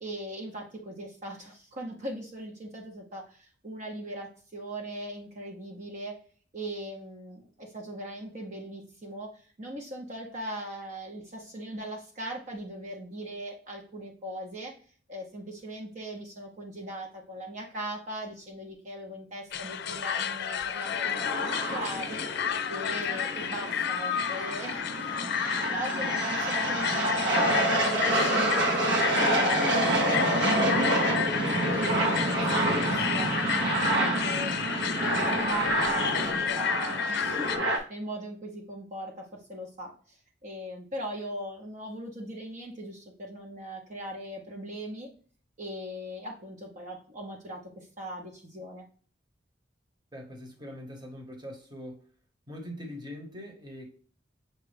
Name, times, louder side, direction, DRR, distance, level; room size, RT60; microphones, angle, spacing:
voice 1, 0.0-6.1 6.5-14.7 15.1-22.2 22.7-24.8 25.7-28.9 29.3-34.5 35.0-45.1 45.6-48.8, right 1 dB, 45° right, 0.9 m, -39 dB
sound 1, 19.5-37.6, left 8 dB, 60° left, 0.5 m, -31 dB
sound 2, 20.8-37.8, right 1 dB, 70° right, 1.1 m, -28 dB
voice 2, 50.1-52.0 52.5-53.9, equal, 25° right, 1.1 m, -42 dB
6.7 x 2.4 x 3.3 m
head